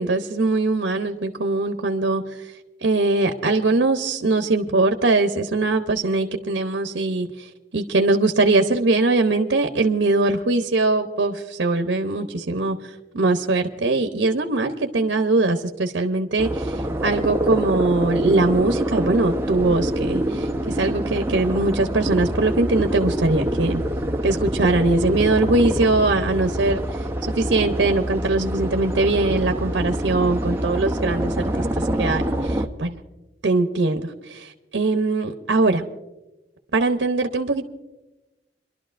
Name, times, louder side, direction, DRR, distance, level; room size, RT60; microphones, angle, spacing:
voice 1, 0.0-2.5 2.8-23.8 24.2-33.0 33.4-35.8 36.7-37.6, right 2 dB, 80° right, 5 dB, 0.8 m, -21 dB
sound 1, 16.4-32.7, right 1 dB, 15° right, 0.7 m, -26 dB
29.5 x 11.5 x 2.5 m, 1.0 s
head